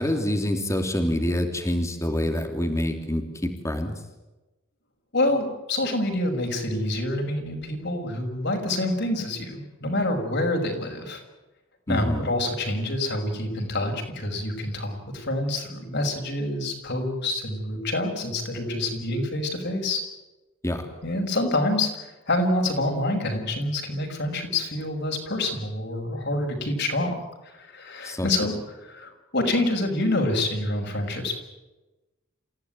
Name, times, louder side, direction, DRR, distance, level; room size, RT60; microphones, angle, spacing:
voice 1, 0.0-3.9 11.9-12.3 20.6-20.8 28.0-28.3, left 1 dB, 15° left, 4 dB, 3.1 m, -26 dB
voice 2, 5.1-11.2 11.9-20.0 21.0-27.1 27.6-28.5 28.8-31.3, left 1 dB, 55° left, 3 dB, 6.2 m, -27 dB
29.0 x 16.5 x 9.2 m, 1.1 s
head